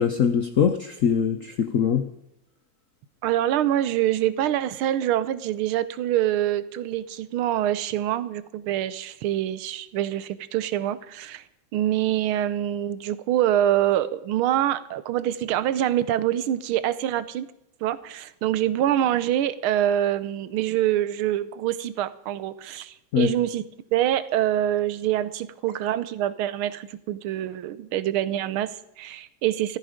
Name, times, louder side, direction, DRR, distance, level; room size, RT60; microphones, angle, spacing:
voice 1, 0.0-2.1 23.1-23.3, left 7 dB, 70° left, 9 dB, 0.7 m, -22 dB
voice 2, 3.2-11.4 11.7-17.5 17.8-23.6 23.9-29.8, right 12 dB, 90° right, 15 dB, 1.6 m, -25 dB
14.0 x 13.5 x 5.0 m, 0.84 s
omnidirectional pair, 2.3 m